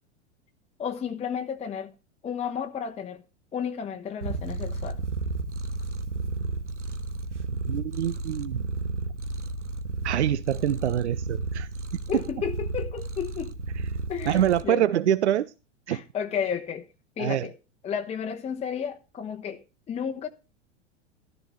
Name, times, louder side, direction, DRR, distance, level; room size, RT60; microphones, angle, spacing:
voice 1, 0.8-1.9 2.2-3.2 3.5-5.0 12.1-13.5 14.1-14.8 15.9-16.9 17.2-17.5 17.8-19.6 19.9-20.3, left 7 dB, 20° left, 1.0 m, -32 dB
Purr, 4.2-14.6, right 3 dB, 85° right, 1.1 m, -32 dB
voice 2, 7.7-8.6 10.0-11.7 12.1-12.2 13.7-13.9 14.3-15.5 15.9-16.0 17.2-17.5, right 11 dB, 70° right, 0.6 m, -25 dB
13.5 x 13.0 x 3.1 m
figure-of-eight pair, 90°, 35 cm